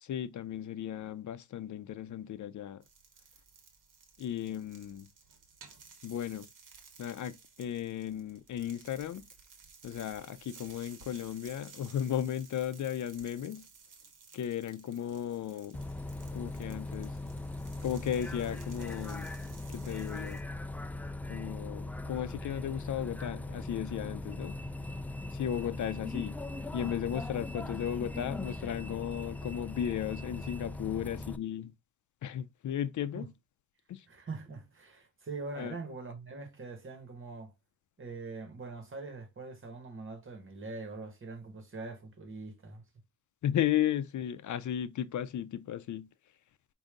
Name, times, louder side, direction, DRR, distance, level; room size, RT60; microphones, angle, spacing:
voice 1, 0.0-2.8 4.2-5.1 6.0-6.5 7.0-9.3 9.8-13.7 14.3-15.8 16.3-17.2 17.8-19.3 19.7-20.4 21.3-24.6 25.3-26.4 26.7-31.7 32.2-33.3 33.9-34.1 35.6-35.8 43.4-46.1, left 10 dB, 70° left, 0.5 m, -35 dB
sound 1, 2.8-20.4, right 5 dB, 75° right, 1.3 m, -56 dB
Bus, 15.7-31.4, left 2 dB, 5° left, 0.3 m, -40 dB
voice 2, 34.1-37.5 38.0-42.8, right 3 dB, 40° right, 1.5 m, -43 dB
5.1 x 2.7 x 3.7 m
cardioid pair, 105°, 31 cm